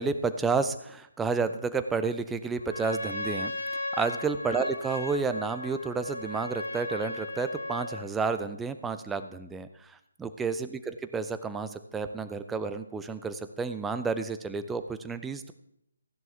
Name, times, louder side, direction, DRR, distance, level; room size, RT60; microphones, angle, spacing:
voice 1, 0.0-15.5, right 4 dB, 5° right, 9 dB, 0.6 m, -31 dB
Trumpet, 2.6-8.1, left 2 dB, 65° left, 2.4 m, -36 dB
15.5 x 10.5 x 3.4 m, 0.75 s
figure-of-eight pair, 150°, 0 cm